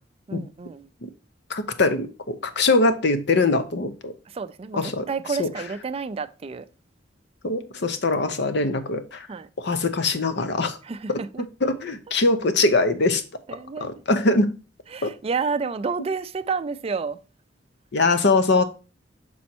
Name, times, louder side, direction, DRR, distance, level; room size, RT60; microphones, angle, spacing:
voice 1, 0.3-0.9 4.3-6.7 9.3-9.5 10.8-11.4 13.5-13.9 14.9-17.2, right 5 dB, 30° right, 0.4 m, -30 dB
voice 2, 1.5-4.1 4.7-5.1 5.4-5.5 7.4-9.3 9.6-10.8 11.1-11.2 11.6-13.2 13.8-14.5 15.0-15.1 17.9-18.6, left 3 dB, 65° left, 0.8 m, -22 dB
6.2 x 4.2 x 4.4 m
head